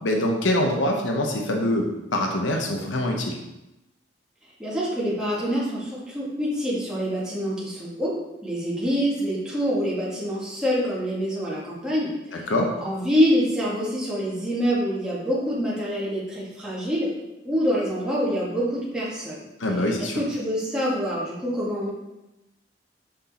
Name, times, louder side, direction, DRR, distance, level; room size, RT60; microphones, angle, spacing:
voice 1, 0.0-3.4 12.5-12.7 19.6-20.1, left 1 dB, 85° left, 1 dB, 0.9 m, -24 dB
voice 2, 4.6-8.1 8.4-12.5 12.8-17.1 17.4-19.4 20.0-21.9, equal, 5° right, -8 dB, 2.0 m, -26 dB
6.2 x 5.9 x 4.2 m, 0.96 s
head